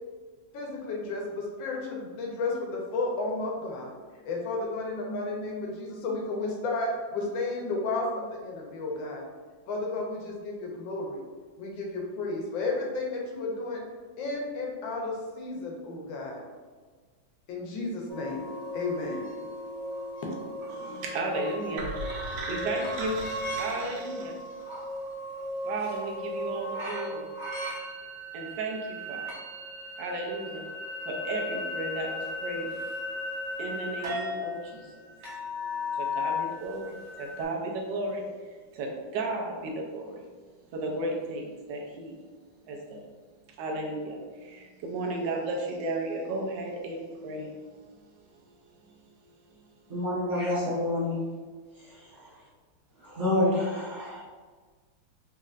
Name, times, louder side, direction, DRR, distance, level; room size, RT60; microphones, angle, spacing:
voice 1, 0.5-3.9 4.2-9.3 9.7-11.2 11.6-13.8 14.2-16.4 17.5-19.2, left 3 dB, 75° left, -1 dB, 1.4 m, -33 dB
sound 1, 18.1-37.4, left 1 dB, 55° right, 0.7 m, -36 dB
voice 2, 20.7-23.2 23.6-24.4 25.6-27.2 28.3-29.3 30.0-30.6 31.0-32.8 33.6-35.0 35.9-40.2 40.7-42.2 42.7-43.0 43.6-47.9 48.3-49.0 49.6-49.7, right 2 dB, 70° right, 0 dB, 1.2 m, -34 dB
sound 2, 21.8-24.8, right 2 dB, 90° right, 1.6 m, -38 dB
voice 3, 49.9-51.2 51.8-52.2 53.0-54.2, left 1 dB, 15° right, -10 dB, 0.8 m, -28 dB
4.2 x 2.8 x 2.4 m, 1.5 s
omnidirectional pair, 2.2 m